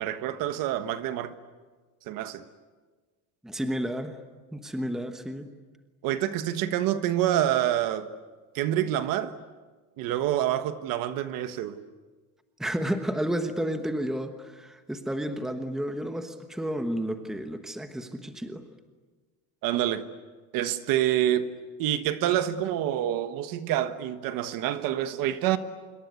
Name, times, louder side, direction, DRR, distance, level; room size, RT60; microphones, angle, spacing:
voice 1, 0.0-1.3 2.1-2.4 6.0-8.1 8.5-9.3 10.0-11.8 19.6-20.1 20.5-21.5 21.8-25.6, right 12 dB, 50° right, 1.4 m, -27 dB
voice 2, 3.4-4.2 4.5-5.5 12.6-18.6, equal, ahead, 1.2 m, -31 dB
26.5 x 23.5 x 9.6 m
cardioid pair, 175°, 43 cm